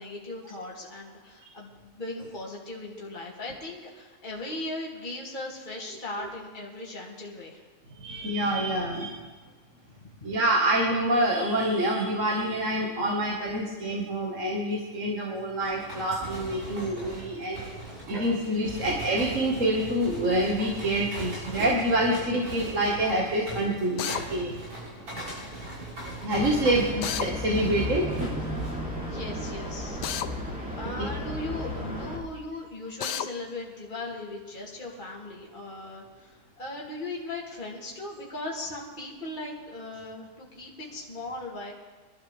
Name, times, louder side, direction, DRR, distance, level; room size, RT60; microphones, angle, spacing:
voice 1, 0.0-7.6 29.0-30.0 30.7-41.7, left 2 dB, 30° left, -4 dB, 2.7 m, -38 dB
voice 2, 7.9-9.2 10.2-17.6 18.1-24.5 26.2-28.1, right 1 dB, 50° right, -3 dB, 2.1 m, -26 dB
sound 1, 15.6-28.7, right 1 dB, 75° right, 6.9 m, -39 dB
Drill, 24.0-24.2 27.0-27.3 30.0-30.3 33.0-33.3, left 10 dB, 85° left, 1.3 m, -30 dB
sound 2, 26.3-32.2, equal, 5° right, 2.9 m, -34 dB
24.5 x 12.5 x 3.5 m, 1.3 s
omnidirectional pair, 1.8 m